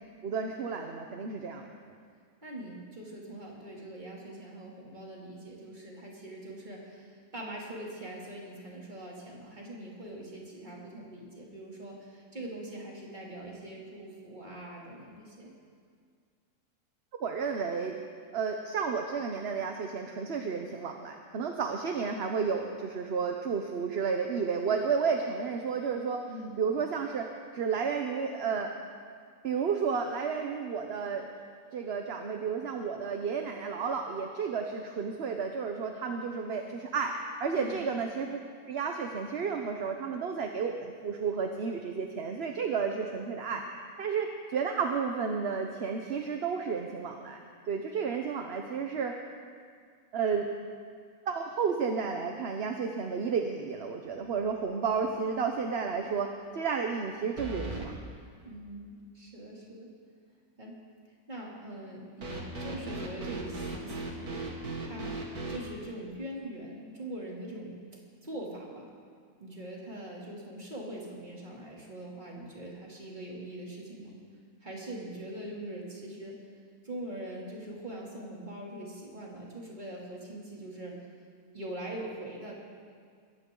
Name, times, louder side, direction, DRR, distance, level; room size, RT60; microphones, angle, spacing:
voice 1, 0.2-1.7 17.2-17.9 18.3-26.2 26.6-27.3 27.5-28.7 29.4-31.3 31.7-37.1 37.4-38.4 38.6-43.6 44.0-47.4 47.7-49.1 50.1-50.5 51.3-57.9, right 5 dB, 50° right, 3 dB, 1.0 m, -32 dB
voice 2, 2.4-15.5 26.3-26.6 37.5-37.8 58.4-59.9 60.6-60.8 61.3-64.4 64.8-65.1 65.5-67.8 68.2-68.9 69.4-74.2 74.6-76.4 76.8-80.9 81.5-82.6, right 1 dB, 30° right, -4 dB, 3.1 m, -42 dB
sound 1, 54.3-54.7 55.1-55.2 57.4-57.9 62.2-65.6, right 2 dB, 80° right, 2.5 m, -37 dB
21.0 x 16.0 x 3.9 m, 2.1 s
omnidirectional pair, 1.6 m